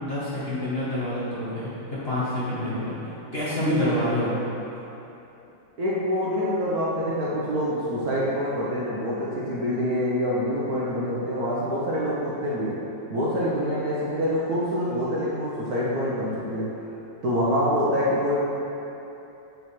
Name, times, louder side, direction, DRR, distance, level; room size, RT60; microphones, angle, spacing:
voice 1, 0.0-2.9 3.3-4.4, left 1 dB, 35° left, -10 dB, 1.1 m, -27 dB
voice 2, 3.6-4.3 5.8-12.8 13.1-16.7 17.2-18.4, equal, 55° right, -7 dB, 1.2 m, -26 dB
9.3 x 3.4 x 4.3 m, 2.9 s
omnidirectional pair, 2.3 m